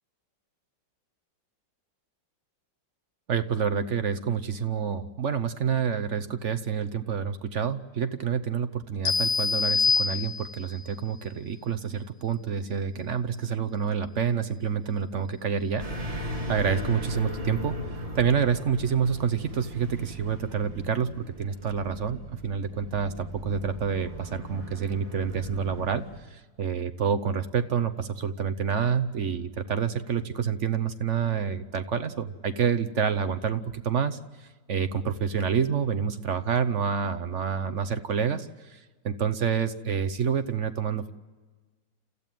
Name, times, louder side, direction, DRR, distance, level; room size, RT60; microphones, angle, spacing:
voice 1, 3.3-15.8 16.1-17.8 18.1-26.0 26.3-38.8 39.0-41.1, right 7 dB, 50° right, 11 dB, 0.9 m, -28 dB
sound 1, 9.1-10.8, left 4 dB, 70° left, 2.3 m, -25 dB
sound 2, 15.8-26.2, equal, 20° right, 2.8 m, -37 dB
30.0 x 14.5 x 9.1 m, 1.3 s
omnidirectional pair, 2.0 m